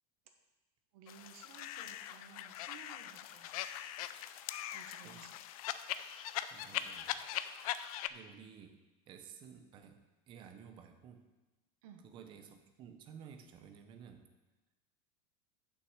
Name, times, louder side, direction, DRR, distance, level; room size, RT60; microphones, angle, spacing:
voice 1, 0.9-3.6 4.7-5.4 11.8-12.1, right 7 dB, 70° right, 5 dB, 1.3 m, -57 dB
sound 1, 1.1-8.1, left 12 dB, 70° left, 0.5 m, -41 dB
voice 2, 6.5-7.2 8.1-11.3 12.0-14.3, right 7 dB, 25° right, 7 dB, 0.7 m, -54 dB
6.5 x 5.8 x 7.2 m, 1.1 s
supercardioid pair, 175°, 19 cm